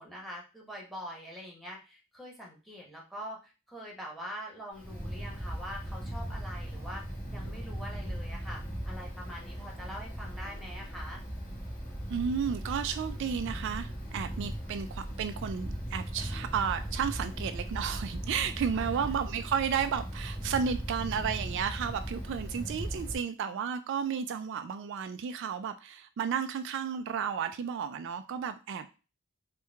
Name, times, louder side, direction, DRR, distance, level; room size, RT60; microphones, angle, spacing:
voice 1, 0.0-11.2 18.7-19.2, equal, ahead, -1 dB, 1.1 m, -44 dB
Wind, 4.7-23.1, right 1 dB, 40° left, 1.5 m, -38 dB
voice 2, 12.1-28.9, right 7 dB, 60° right, 9 dB, 0.3 m, -33 dB
4.5 x 2.2 x 3.3 m, 0.32 s
head